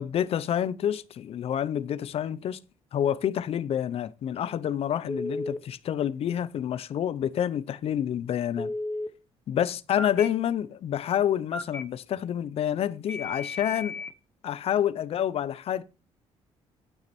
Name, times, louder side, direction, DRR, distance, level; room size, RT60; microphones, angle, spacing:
voice 1, 0.0-2.6 2.9-8.7 9.5-14.0 14.4-15.8, left 10 dB, 60° left, 0.7 m, -28 dB
Telephone, 5.1-5.6 8.6-9.1 10.0-10.3 11.5-11.8 13.1-14.1, left 2 dB, 15° left, 0.9 m, -33 dB
12.0 x 6.5 x 4.4 m
cardioid pair, 110°, 11 cm